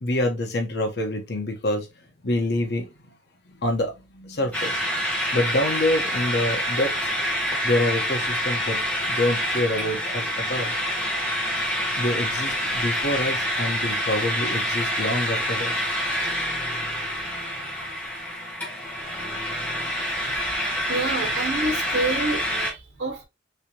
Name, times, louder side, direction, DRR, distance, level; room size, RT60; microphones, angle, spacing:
voice 1, 0.0-1.9 2.2-2.9 3.5-4.8 5.3-7.1 7.6-8.8 9.1-10.7 12.0-15.7 20.1-20.5, left 1 dB, 65° left, 0.9 m, -26 dB
sound 1, 4.5-22.7, equal, 10° left, 1.1 m, -27 dB
voice 2, 20.9-23.2, right 2 dB, 90° right, 1.0 m, -28 dB
3.2 x 2.8 x 2.8 m
head